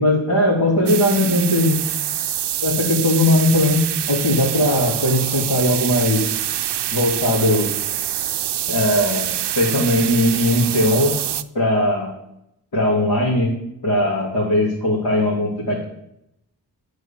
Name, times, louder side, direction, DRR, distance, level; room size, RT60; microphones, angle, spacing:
voice 1, 0.0-1.8 2.6-6.2 6.9-7.7 8.7-11.2 11.5-12.1 12.7-13.5 13.8-15.8, left 1 dB, 65° left, -6 dB, 3.2 m, -19 dB
sound 1, 0.9-11.4, right 11 dB, 75° right, 0.6 m, -25 dB
9.4 x 4.9 x 7.4 m, 0.79 s
cardioid pair, 65°, 42 cm